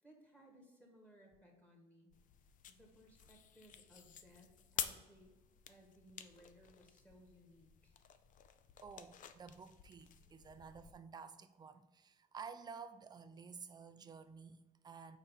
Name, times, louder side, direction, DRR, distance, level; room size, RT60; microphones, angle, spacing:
voice 1, 0.0-2.1 2.7-5.4 5.7-7.9, equal, 10° left, 0 dB, 1.6 m, -63 dB
sound 1, 2.1-10.9, left 9 dB, 50° left, 0.5 m, -50 dB
voice 2, 8.8-15.2, right 5 dB, 25° right, 9 dB, 0.5 m, -52 dB
4.8 x 4.1 x 5.5 m, 1.1 s
cardioid pair, 110°, 17 cm